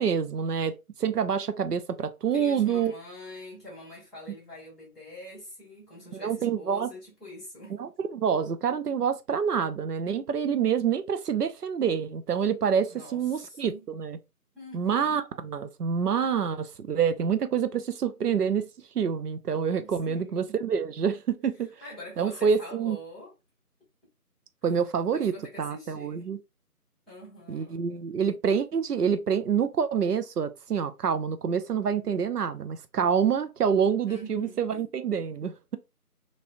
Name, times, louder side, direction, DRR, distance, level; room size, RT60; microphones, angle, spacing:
voice 1, 0.0-2.9 6.1-6.9 7.8-14.2 14.7-18.7 18.9-21.7 22.2-23.0 24.6-26.4 27.5-35.8, right 7 dB, 85° right, 0.6 m, -27 dB
voice 2, 2.3-7.7 12.9-13.9 14.5-15.2 19.8-20.4 21.8-23.3 25.1-26.3 27.1-27.8 34.1-34.8, equal, ahead, 1.0 m, -44 dB
3.0 x 2.9 x 2.5 m
figure-of-eight pair, 175°, 46 cm